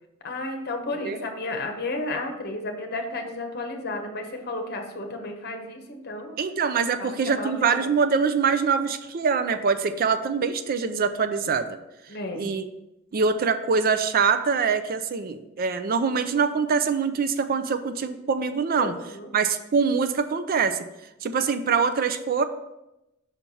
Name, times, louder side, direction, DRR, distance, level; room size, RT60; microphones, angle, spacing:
voice 1, 0.2-6.4 7.0-7.9 12.1-12.4 18.8-19.3, left 2 dB, 50° left, 4 dB, 1.0 m, -32 dB
voice 2, 6.4-11.8 12.3-12.7 13.1-18.9 19.3-20.8 21.2-22.4, right 5 dB, 45° right, 10 dB, 0.4 m, -24 dB
5.7 x 4.5 x 5.4 m, 0.92 s
head